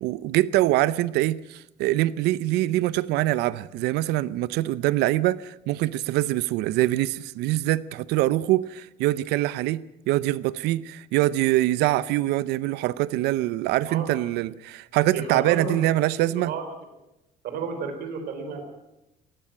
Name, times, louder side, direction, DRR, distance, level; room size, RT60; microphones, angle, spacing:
voice 1, 0.0-16.5, right 16 dB, 80° right, 0.7 m, -24 dB
voice 2, 15.1-15.8 16.1-16.6 17.4-18.6, right 5 dB, 65° right, 4.2 m, -31 dB
20.0 x 14.5 x 9.0 m
cardioid pair, 135°, 17 cm